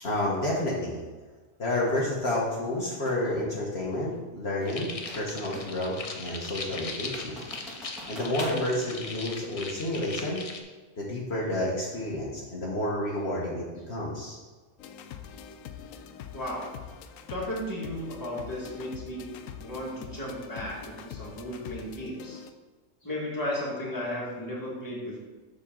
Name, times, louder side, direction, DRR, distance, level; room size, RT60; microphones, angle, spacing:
voice 1, 0.0-1.0 1.6-7.4 7.7-10.4 11.0-14.4, left 1 dB, 50° left, -4 dB, 1.4 m, -30 dB
sound 1, 3.0-3.3 4.6-5.9 6.3-6.4 6.9-8.6, equal, ahead, 1.6 m, -44 dB
sound 2, 4.6-10.6, left 3 dB, 35° left, 0.6 m, -39 dB
sound 3, 14.8-22.5, left 8 dB, 80° left, 1.0 m, -44 dB
voice 2, 16.3-16.7 17.3-19.3 19.6-22.4 23.0-25.2, left 1 dB, 15° left, -5 dB, 1.8 m, -34 dB
7.2 x 6.5 x 3.7 m, 1.3 s
omnidirectional pair, 1.4 m